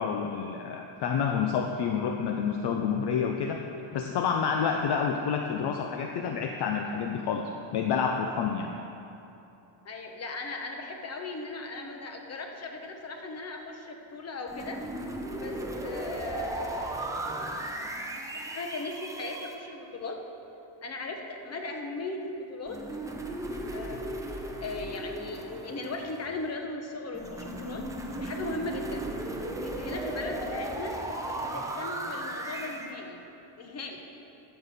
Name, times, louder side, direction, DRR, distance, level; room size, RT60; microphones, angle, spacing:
voice 1, 0.0-3.6 3.9-8.7, left 6 dB, 55° left, 3 dB, 0.6 m, -29 dB
voice 2, 9.8-14.8 15.4-15.5 15.8-17.1 18.5-20.2 20.8-22.8 23.7-27.8 28.2-29.1 29.6-33.2 33.6-34.0, left 3 dB, 30° left, 3 dB, 1.1 m, -38 dB
sound 1, 14.5-19.6 22.7-26.4 27.1-32.9, right 1 dB, 5° right, 0.6 m, -36 dB
13.0 x 6.9 x 4.2 m, 2.8 s
cardioid pair, 135°, 50 cm